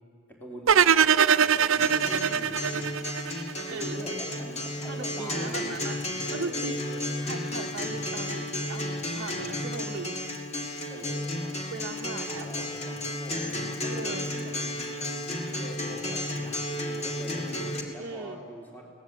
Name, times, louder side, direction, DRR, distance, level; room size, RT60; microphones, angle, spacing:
voice 1, 0.3-3.1 3.7-5.8 6.4-7.3 9.7-9.9 10.9-11.6 12.3-14.6 15.5-18.9, equal, 10° left, -1 dB, 3.7 m, -43 dB
sound 1, 0.7-3.8, right 7 dB, 75° right, 0.6 m, -22 dB
Acoustic guitar, 1.8-17.8, left 1 dB, 30° left, 2.5 m, -33 dB
voice 2, 3.7-4.0 4.9-6.0 6.3-8.9 9.1-10.2 11.7-12.5 13.8-14.3 18.0-18.4, right 3 dB, 50° right, -1 dB, 1.0 m, -38 dB
22.5 x 18.0 x 8.4 m, 2.4 s
head